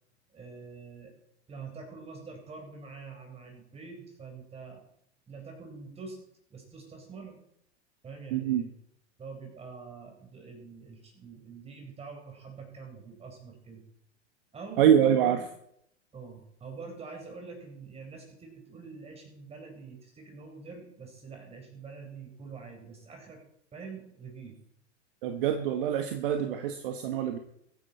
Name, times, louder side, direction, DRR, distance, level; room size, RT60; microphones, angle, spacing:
voice 1, 0.3-1.1 1.5-4.8 5.3-6.2 6.5-7.4 8.0-8.7 9.2-13.8 14.5-14.8 15.2-15.3 16.1-23.4 23.7-24.6, right 4 dB, 15° right, 3 dB, 4.3 m, -45 dB
voice 2, 8.3-8.6 14.8-15.4 25.2-27.4, right 9 dB, 45° right, 8 dB, 1.2 m, -25 dB
23.0 x 9.5 x 4.3 m, 0.75 s
figure-of-eight pair, 95°, 37 cm